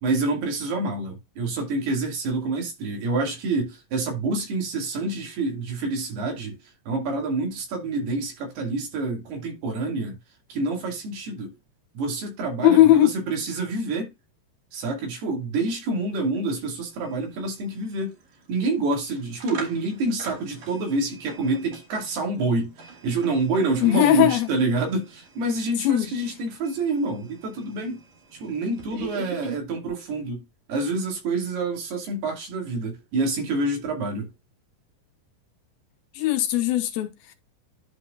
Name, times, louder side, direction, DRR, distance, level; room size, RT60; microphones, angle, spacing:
voice 1, 0.0-6.6 6.9-10.2 10.5-11.5 11.9-14.1 14.7-18.1 18.5-28.0 28.3-30.4 30.7-34.3, right 3 dB, 70° right, 4.4 m, -27 dB
voice 2, 12.6-13.1 23.8-24.5 25.8-26.1 36.1-37.3, left 14 dB, 75° left, 2.4 m, -18 dB
sound 1, 15.7-15.8 16.1-29.6, right 5 dB, 50° right, 3.2 m, -44 dB
11.5 x 4.8 x 2.5 m
omnidirectional pair, 4.8 m